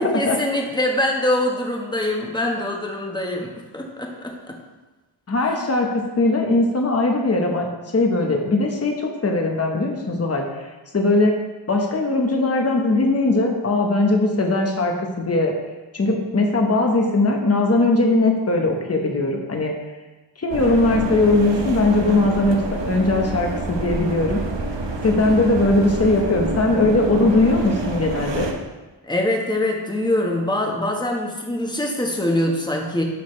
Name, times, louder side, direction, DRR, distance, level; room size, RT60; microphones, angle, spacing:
voice 1, 0.0-4.6 29.0-33.0, left 1 dB, 10° left, 0 dB, 1.2 m, -24 dB
voice 2, 5.3-7.7 7.9-11.4 11.7-15.5 15.9-19.7 20.4-22.6 22.8-24.4 25.0-28.5, left 2 dB, 30° left, 2 dB, 1.0 m, -20 dB
sound 1, 20.5-28.5, right 2 dB, 65° right, 1.1 m, -27 dB
11.0 x 6.4 x 3.2 m, 1.2 s
wide cardioid pair, 120°, 47 cm